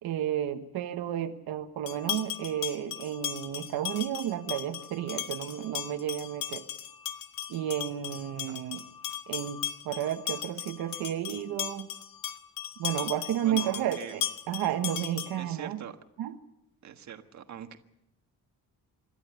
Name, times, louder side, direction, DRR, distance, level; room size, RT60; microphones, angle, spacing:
voice 1, 0.0-6.6 7.5-8.8 9.3-11.9 12.8-15.8 16.2-16.4, right 11 dB, 85° right, 6 dB, 1.4 m, -32 dB
sound 1, 1.9-15.5, left 11 dB, 65° left, 1.3 m, -37 dB
voice 2, 13.4-14.2 15.4-15.9 16.8-17.8, right 9 dB, 50° right, 6 dB, 1.6 m, -42 dB
27.0 x 12.5 x 8.2 m, 0.83 s
cardioid pair, 150°, 36 cm